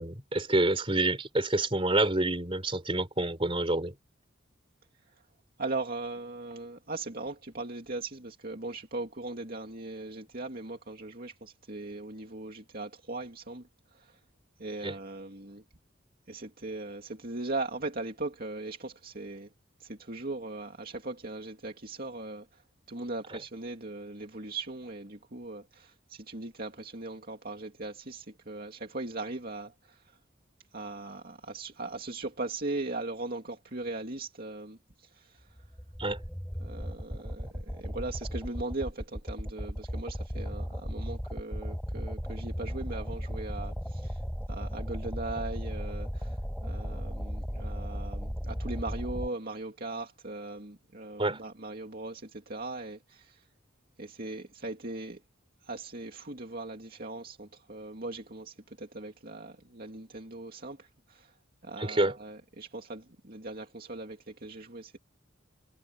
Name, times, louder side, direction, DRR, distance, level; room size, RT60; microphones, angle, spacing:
voice 1, 0.0-3.9 14.8-14.9 23.3-23.4 36.0-36.2 51.2-51.4 61.8-62.2, right 2 dB, 30° right, 3.5 m, -28 dB
voice 2, 5.6-13.6 14.6-15.6 16.3-19.5 19.8-22.4 22.9-29.7 30.7-34.8 35.2-35.3 36.6-44.2 44.5-46.3 46.6-53.4 54.0-55.2 55.7-61.3 61.6-65.0, right 2 dB, 50° right, 2.4 m, -39 dB
sound 1, 35.5-49.3, equal, 5° left, 4.7 m, -36 dB
head